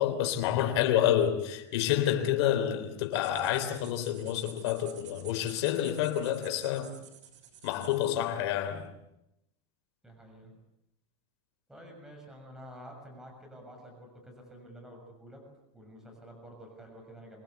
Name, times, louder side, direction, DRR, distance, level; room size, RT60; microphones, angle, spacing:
voice 1, 0.0-6.9 7.6-8.9, left 11 dB, 60° left, 3.6 m, -28 dB
sound 1, 3.0-8.3, right 9 dB, 85° right, 5.9 m, -51 dB
voice 2, 10.0-10.5 11.7-15.4 15.7-17.4, equal, 5° right, 6.5 m, -49 dB
25.5 x 20.0 x 8.3 m
supercardioid pair, 160°, 15 cm